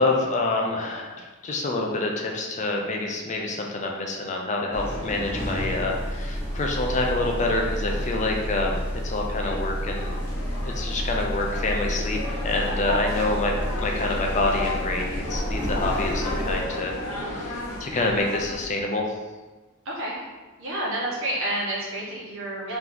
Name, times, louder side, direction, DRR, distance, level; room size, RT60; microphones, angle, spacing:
voice 1, 0.0-10.1 10.6-19.0, left 2 dB, 35° left, 1 dB, 0.5 m, -27 dB
sound 1, 4.7-16.6, equal, 10° left, 1.0 m, -30 dB
sound 2, 7.9-8.8 9.5-9.9 10.2-10.3 10.5-10.6 11.2-11.5 11.8-12.1 12.5-13.8, right 1 dB, 15° right, 0.9 m, -44 dB
sound 3, 9.8-18.7, left 2 dB, 90° left, 1.0 m, -33 dB
voice 2, 19.8-20.2 20.6-22.8, right 1 dB, 65° right, -5 dB, 1.2 m, -29 dB
3.5 x 2.9 x 3.7 m, 1.2 s
head